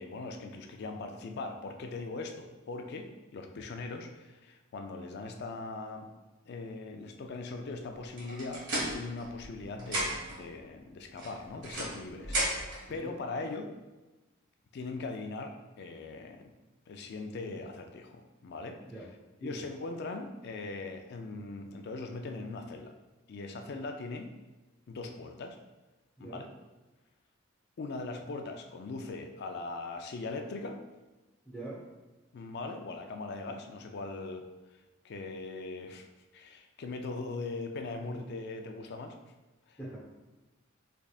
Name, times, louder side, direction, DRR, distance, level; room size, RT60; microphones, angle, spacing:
voice 1, 0.0-6.1 6.5-8.6 8.9-13.7 14.7-16.5 16.9-18.8 19.4-22.9 23.3-24.3 24.9-25.6 26.2-26.5 27.8-30.8 32.3-34.5 35.0-36.1 36.3-39.1 39.7-39.8, left 3 dB, 55° left, 5 dB, 0.4 m, -40 dB
sound 1, 8.2-9.5 9.8-10.4 11.2-12.8, right 1 dB, 65° right, 1.4 m, -34 dB
voice 2, 31.4-31.8 38.1-38.2 39.8-40.0, right 2 dB, ahead, -8 dB, 0.9 m, -43 dB
3.7 x 3.4 x 2.3 m, 1.1 s
head